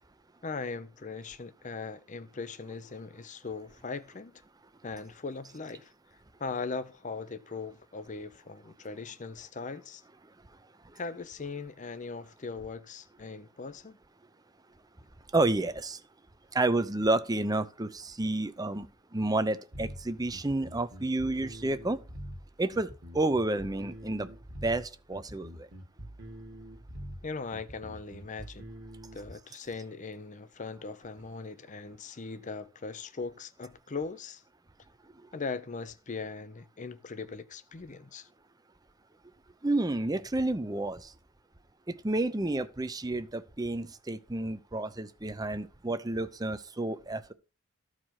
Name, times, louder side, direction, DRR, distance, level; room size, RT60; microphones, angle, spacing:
voice 1, 0.4-4.4 4.8-5.9 6.4-10.0 10.9-14.0 27.2-28.7 29.1-34.4 35.3-38.3, left 4 dB, 35° left, 0.6 m, -39 dB
voice 2, 15.3-16.0 16.5-22.0 22.6-24.3 24.6-25.7 39.6-41.1 42.0-47.3, right 2 dB, 15° right, 0.7 m, -30 dB
sound 1, 19.7-29.3, equal, 45° right, 1.7 m, -44 dB
13.5 x 4.9 x 5.7 m
head